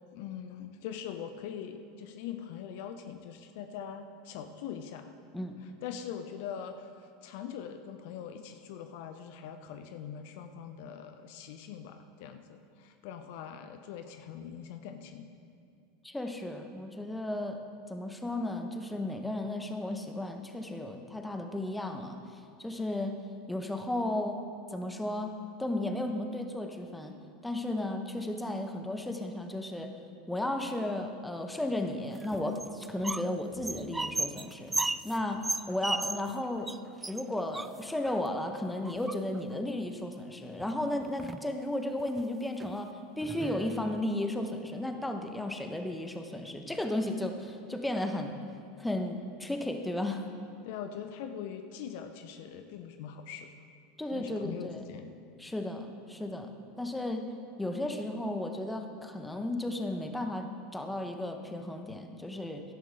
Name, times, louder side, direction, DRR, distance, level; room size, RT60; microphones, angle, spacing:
voice 1, 0.1-5.1 5.8-15.3 50.6-53.5 54.1-55.1, left 8 dB, 60° left, 8 dB, 0.7 m, -42 dB
voice 2, 16.0-17.6 17.9-22.2 22.6-23.2 23.5-24.4 24.7-27.1 27.4-29.9 30.3-34.7 35.0-36.7 37.1-48.4 48.8-50.3 54.0-54.8 55.4-56.5 56.8-57.3 57.6-60.5 60.7-62.6, left 1 dB, 5° left, 5 dB, 1.2 m, -34 dB
sound 1, 32.1-33.3 33.6-36.4 36.7-36.8 37.0-38.2 38.8-39.5 40.6-40.7 41.0-41.5 42.0-42.2 42.6-42.7 43.2-44.0, right 2 dB, 10° right, 0.3 m, -35 dB
17.0 x 11.5 x 3.8 m, 2.5 s
hypercardioid pair, 85°, 0 cm